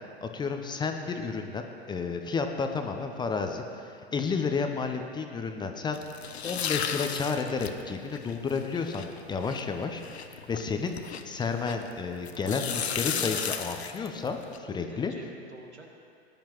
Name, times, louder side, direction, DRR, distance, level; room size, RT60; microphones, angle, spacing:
voice 1, 0.2-6.0 6.4-11.0 11.2-15.1, left 5 dB, 15° left, 5 dB, 0.7 m, -31 dB
sound 1, 5.9-11.9 12.3-14.6, left 7 dB, 75° left, 0.8 m, -35 dB
voice 2, 12.3-13.8 14.6-16.0, right 2 dB, 80° right, 1 dB, 1.6 m, -46 dB
19.0 x 10.5 x 3.0 m, 2.3 s
figure-of-eight pair, 95°, 33 cm